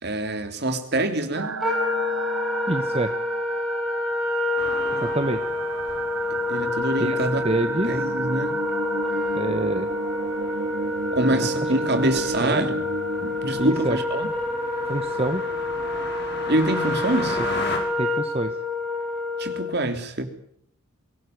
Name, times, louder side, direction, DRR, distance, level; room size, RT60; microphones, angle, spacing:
voice 1, 0.0-1.5 6.5-7.4 7.9-8.5 11.1-12.8 13.2-14.3 16.5-17.4 19.4-20.2, right 1 dB, 50° right, 7 dB, 3.3 m, -25 dB
sound 1, 1.3-13.7, right 4 dB, 75° right, 1.5 m, -33 dB
Wind instrument woodwind instrument, 1.6-19.7, left 2 dB, ahead, 7.5 m, -28 dB
voice 2, 2.7-3.1 5.0-5.4 7.0-7.2 7.4-8.0 9.3-9.9 11.3-11.5 12.0-12.1 12.4-12.6 13.6-14.0 14.9-15.4 17.4-17.5 18.0-18.6, right 1 dB, 30° right, 8 dB, 1.2 m, -26 dB
sound 2, 4.6-17.8, left 2 dB, 55° left, 5.2 m, -37 dB
24.0 x 17.5 x 9.4 m, 0.67 s
head